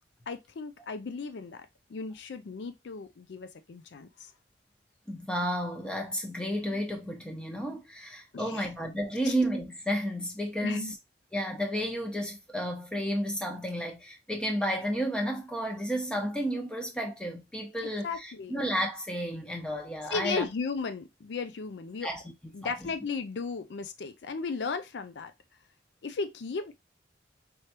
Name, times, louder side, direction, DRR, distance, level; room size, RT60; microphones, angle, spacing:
voice 1, 0.3-4.3 8.3-8.7 9.2-9.3 10.6-10.9 18.0-18.6 20.1-22.1 22.5-25.3 26.0-26.7, left 4 dB, 70° left, 0.4 m, -35 dB
voice 2, 5.1-10.9 11.3-20.5 22.0-22.7, equal, 5° left, 1.0 m, -32 dB
4.7 x 3.3 x 2.8 m
head